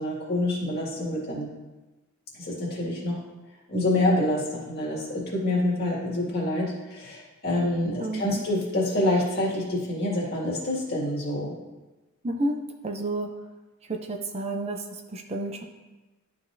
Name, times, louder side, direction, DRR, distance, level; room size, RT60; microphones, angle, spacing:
voice 1, 0.0-1.5 2.4-3.2 3.7-11.5, left 1 dB, 45° left, -5 dB, 2.0 m, -27 dB
voice 2, 8.0-8.4 12.2-12.6 12.8-13.3 13.9-15.6, right 2 dB, 30° right, 4 dB, 0.5 m, -30 dB
11.5 x 3.9 x 2.6 m, 1.2 s
head